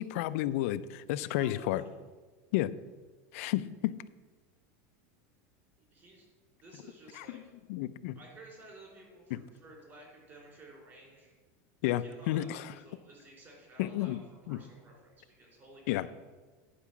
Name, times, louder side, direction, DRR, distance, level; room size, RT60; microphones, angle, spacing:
voice 1, 0.0-1.8 2.5-2.7 3.3-4.0 7.2-7.4 7.7-8.2 9.3-9.4 11.8-12.6 13.8-14.2 14.5-14.6 15.9-16.1, left 14 dB, 65° left, 15 dB, 0.4 m, -31 dB
voice 2, 1.2-1.9 5.8-6.3 6.6-7.4 8.1-11.3 11.8-14.2 14.5-16.1, right 1 dB, 30° right, -1 dB, 3.5 m, -53 dB
10.0 x 4.8 x 7.0 m, 1.4 s
supercardioid pair, 150°, 8 cm